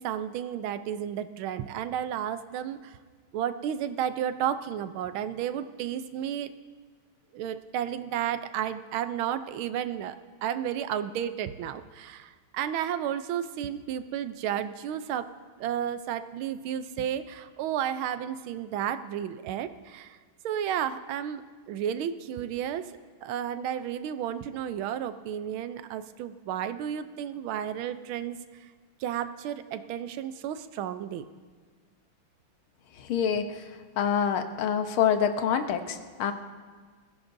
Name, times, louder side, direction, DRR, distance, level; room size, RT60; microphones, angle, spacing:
voice 1, 0.0-3.0 3.3-6.5 7.3-15.3 15.6-20.2 20.4-22.9 23.2-28.4 29.0-31.2, right 9 dB, 80° right, 11 dB, 1.5 m, -32 dB
voice 2, 33.0-33.5 34.0-36.3, left 8 dB, 90° left, 7 dB, 1.7 m, -26 dB
20.0 x 15.5 x 2.6 m, 1.5 s
omnidirectional pair, 2.3 m